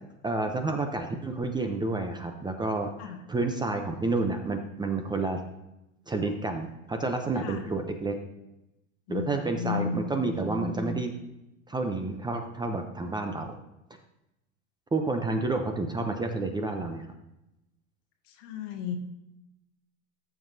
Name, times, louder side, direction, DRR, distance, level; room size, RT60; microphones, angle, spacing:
voice 1, 0.2-5.4 6.1-8.2 9.1-11.1 11.7-13.5 14.9-17.0, right 3 dB, 10° right, 5 dB, 0.6 m, -30 dB
voice 2, 9.1-10.1 18.3-19.0, left 6 dB, 65° left, 6 dB, 1.3 m, -34 dB
14.0 x 5.7 x 2.7 m, 0.91 s
supercardioid pair, 125°, 39 cm